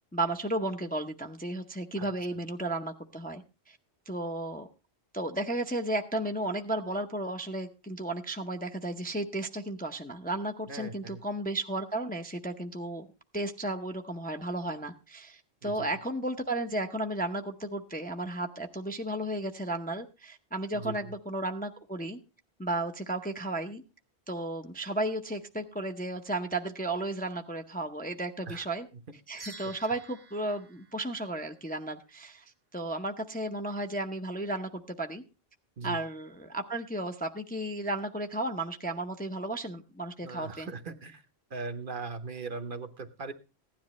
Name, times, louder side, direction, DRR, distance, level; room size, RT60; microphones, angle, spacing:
voice 1, 0.1-3.8 4.1-4.7 5.1-13.1 13.3-22.2 22.6-23.8 24.3-28.9 29.3-35.2 35.8-40.7, right 1 dB, 10° left, 5 dB, 0.6 m, -34 dB
voice 2, 10.7-11.2 15.6-15.9 20.7-21.1 28.5-28.7 29.4-29.7 35.8-36.0 40.2-41.2 41.5-43.3, right 4 dB, 55° right, 8 dB, 1.1 m, -39 dB
sound 1, 29.4-31.8, right 3 dB, 25° right, 0.9 m, -50 dB
15.5 x 10.5 x 3.1 m, 0.29 s
omnidirectional pair, 1.1 m